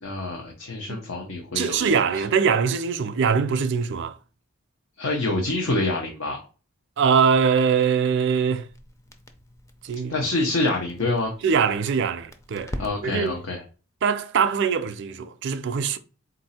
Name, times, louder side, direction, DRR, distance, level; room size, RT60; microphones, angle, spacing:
voice 1, 0.0-1.9 5.0-6.4 10.1-11.3 12.8-13.6, left 2 dB, 80° left, 0.8 m, -26 dB
voice 2, 1.5-4.2 7.0-8.7 9.8-10.1 11.4-12.8 13.0-13.3 14.0-16.0, right 6 dB, 60° right, 0.4 m, -22 dB
Crackle, 8.1-13.4, equal, 15° left, 0.4 m, -42 dB
4.0 x 2.6 x 4.1 m
head